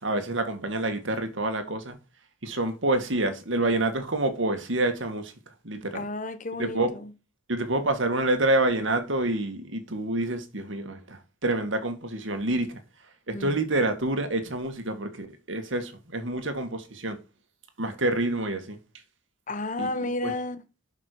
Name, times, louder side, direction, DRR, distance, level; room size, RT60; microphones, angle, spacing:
voice 1, 0.0-2.0 2.4-5.3 5.6-6.0 6.6-6.9 7.5-12.8 13.3-17.2 17.8-18.8 19.8-20.3, right 2 dB, 75° right, 2.1 m, -27 dB
voice 2, 5.9-6.8 13.3-13.5 19.5-20.6, left 2 dB, 40° left, 1.0 m, -31 dB
12.0 x 6.0 x 4.7 m
head